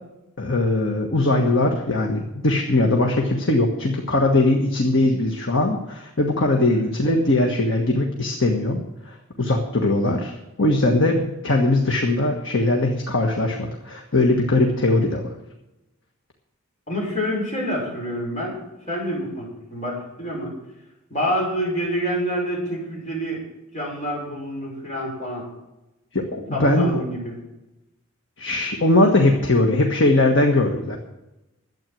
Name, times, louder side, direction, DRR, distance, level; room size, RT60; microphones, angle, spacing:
voice 1, 0.4-8.8 9.0-15.2 26.1-27.0 28.4-31.0, left 2 dB, 60° left, 2 dB, 1.5 m, -20 dB
voice 2, 16.9-18.6 18.9-20.5 21.1-23.4 23.7-25.5 26.5-27.4, equal, 35° left, -3 dB, 5.8 m, -27 dB
12.0 x 8.6 x 7.6 m, 0.95 s
head